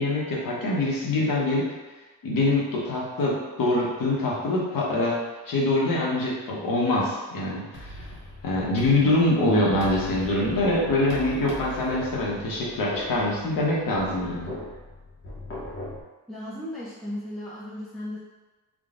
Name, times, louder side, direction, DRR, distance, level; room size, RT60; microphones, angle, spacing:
voice 1, 0.0-1.7 2.2-5.2 5.5-7.9 8.4-14.5, left 2 dB, 75° left, -4 dB, 1.1 m, -24 dB
sound 1, 7.7-16.0, left 1 dB, 35° left, 0.9 m, -39 dB
voice 2, 16.3-18.2, left 1 dB, ahead, -9 dB, 0.5 m, -35 dB
3.7 x 2.3 x 3.7 m, 1.2 s
wide cardioid pair, 160°, 34 cm